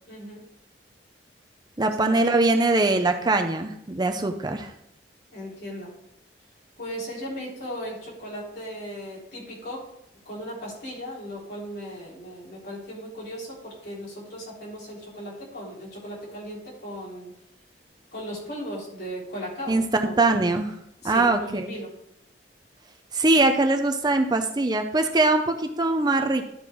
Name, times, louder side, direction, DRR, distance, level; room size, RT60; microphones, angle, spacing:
voice 1, 0.1-0.4 1.8-2.2 5.3-5.9 6.8-9.9 10.3-17.3 18.1-20.1 21.0-21.9, equal, 60° left, -5 dB, 3.6 m, -37 dB
voice 2, 1.8-4.7 19.7-20.8 21.0-21.7 23.1-26.5, right 2 dB, 25° right, 5 dB, 0.6 m, -22 dB
11.5 x 4.4 x 4.5 m, 0.80 s
head